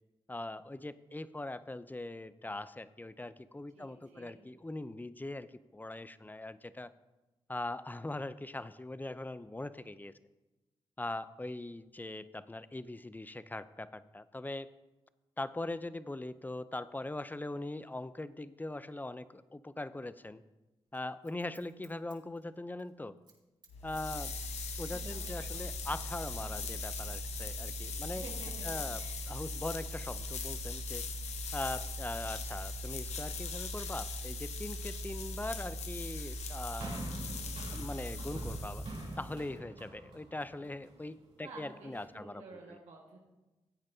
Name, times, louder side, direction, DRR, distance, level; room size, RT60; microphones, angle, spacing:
voice 1, 0.3-6.9 7.5-10.1 11.0-14.7 15.4-20.4 20.9-23.1 23.8-24.4 24.8-28.2 28.6-31.0 31.5-37.0 37.7-38.8 39.2-42.4 42.7-42.8, left 2 dB, 15° left, 15 dB, 0.6 m, -41 dB
voice 2, 3.7-4.4 24.7-25.4 28.1-29.3 41.4-43.2, right 3 dB, 90° right, -2 dB, 1.7 m, -52 dB
Scissors, 20.9-22.9 23.2-23.4 23.6-26.0 26.2-27.3 27.6-27.7, right 3 dB, 45° right, 3.3 m, -59 dB
sound 1, 23.7-39.5, left 2 dB, 90° left, 0.8 m, -39 dB
sound 2, 36.8-41.2 41.9-42.0, right 1 dB, 65° right, 3.7 m, -45 dB
15.5 x 8.6 x 2.8 m, 1.1 s
supercardioid pair, 45°, 11 cm